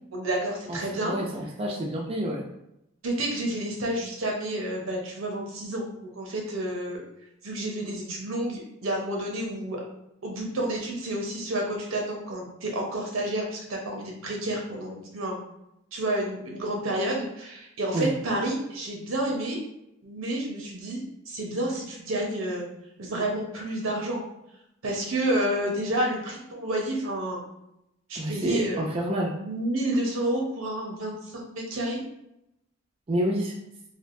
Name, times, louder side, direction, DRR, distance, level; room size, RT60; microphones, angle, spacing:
voice 1, 0.1-1.1 3.0-5.9 6.1-7.0 7.4-9.8 10.2-15.4 15.9-19.6 20.0-22.6 23.0-24.2 24.8-27.4 28.1-28.8 29.4-32.0, right 1 dB, 90° right, 0 dB, 0.8 m, -30 dB
voice 2, 0.7-2.4 17.9-18.1 28.2-29.3 33.1-33.5, right 1 dB, 30° right, -2 dB, 0.4 m, -28 dB
3.3 x 2.3 x 2.5 m, 0.83 s
head